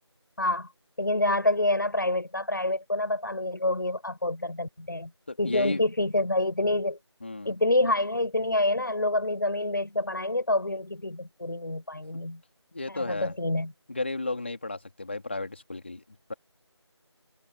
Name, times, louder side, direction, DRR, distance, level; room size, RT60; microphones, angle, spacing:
voice 1, 0.4-0.7 1.0-5.1 5.4-7.0 7.4-12.4 12.9-13.7, left 1 dB, 45° left, 6.3 m, -27 dB
voice 2, 5.3-5.8 7.2-7.5 12.7-13.3 13.9-16.3, left 2 dB, 25° left, 3.3 m, -33 dB
figure-of-eight pair, 175°, 15 cm